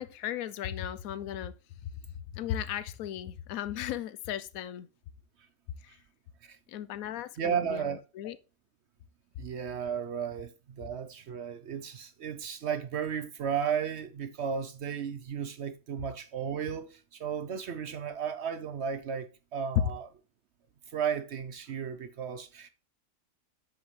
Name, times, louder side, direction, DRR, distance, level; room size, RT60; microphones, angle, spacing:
voice 1, 0.0-1.5 2.3-4.9 6.7-8.4, left 11 dB, 75° left, 1.0 m, -36 dB
voice 2, 7.4-8.0 9.4-20.1 20.9-22.7, right 7 dB, 60° right, 0.8 m, -34 dB
8.2 x 6.3 x 3.1 m
omnidirectional pair, 1.5 m